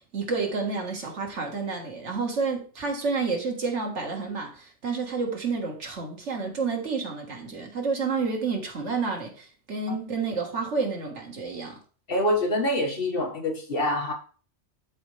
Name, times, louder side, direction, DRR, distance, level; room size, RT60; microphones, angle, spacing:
voice 1, 0.1-11.8, right 4 dB, 80° right, 1.9 m, -30 dB
voice 2, 12.1-14.1, left 1 dB, 55° left, 1.8 m, -25 dB
12.0 x 4.3 x 3.3 m
omnidirectional pair, 1.2 m